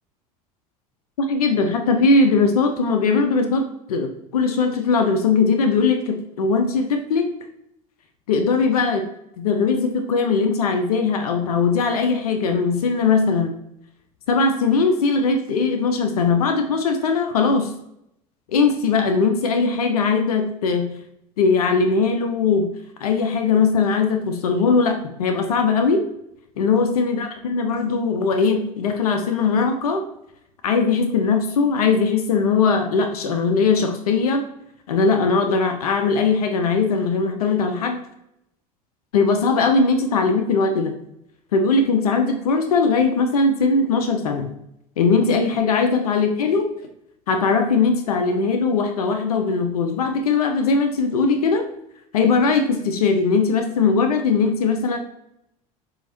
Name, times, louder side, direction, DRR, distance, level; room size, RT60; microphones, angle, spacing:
voice 1, 1.2-7.3 8.3-9.1 9.4-13.5 14.3-17.7 18.5-21.0 21.4-26.0 26.6-30.0 30.6-34.4 34.9-38.0 39.1-41.0 41.5-44.5 45.0-46.7 47.3-51.7 52.1-55.0, left 4 dB, 85° left, 5 dB, 0.6 m, -20 dB
7.0 x 2.8 x 2.6 m, 0.78 s
hypercardioid pair, 80°, 19 cm